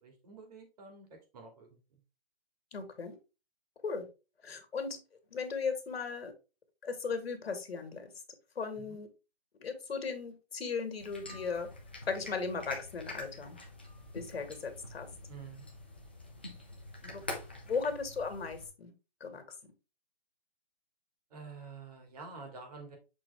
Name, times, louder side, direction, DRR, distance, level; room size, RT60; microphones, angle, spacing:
voice 1, 0.0-1.8 8.8-9.0 15.3-15.7 21.3-23.0, right 4 dB, 40° right, 4 dB, 2.3 m, -49 dB
voice 2, 2.7-3.2 3.8-4.1 4.4-5.0 5.3-6.3 6.8-8.1 8.6-9.1 9.6-11.7 12.1-13.6 14.1-15.1 17.0-17.2 17.7-18.9 19.2-19.4, left 5 dB, 80° left, 6 dB, 2.1 m, -37 dB
sound 1, 11.0-18.7, left 2 dB, 10° left, 0.4 m, -46 dB
6.9 x 4.3 x 3.5 m, 0.30 s
hypercardioid pair, 165°, 30 cm